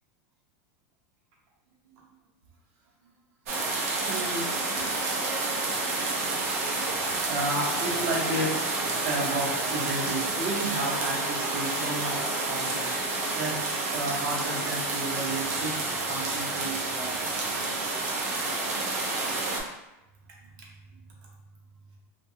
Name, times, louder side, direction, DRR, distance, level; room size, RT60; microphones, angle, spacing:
voice 1, 1.9-2.2 4.1-4.5 6.2-6.6 7.0-12.9 13.3-17.5 20.6-21.0, right 2 dB, 50° right, -2 dB, 0.8 m, -33 dB
sound 1, 3.5-19.6, right 3 dB, 90° right, 0.6 m, -29 dB
Wind instrument woodwind instrument, 7.7-15.1, left 3 dB, 45° left, 0.4 m, -43 dB
2.6 x 2.2 x 2.7 m, 0.94 s
supercardioid pair, 160°, 8 cm